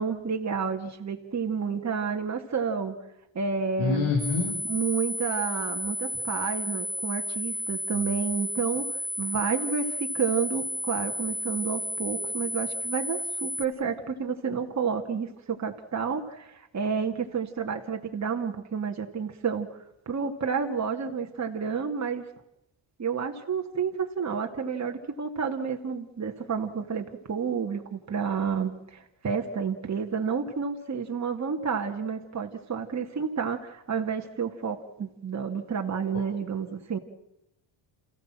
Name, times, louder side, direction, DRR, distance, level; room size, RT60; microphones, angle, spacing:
voice 1, 0.0-2.9 3.3-4.1 4.6-8.9 9.2-19.7 20.1-22.2 23.0-37.0, right 6 dB, 35° right, 3 dB, 2.3 m, -30 dB
voice 2, 3.8-4.6, left 4 dB, 85° left, 1 dB, 5.0 m, -26 dB
sound 1, 4.2-13.7, left 1 dB, 55° right, 2.6 m, -32 dB
27.5 x 16.0 x 7.6 m, 0.83 s
cardioid pair, 95°, 47 cm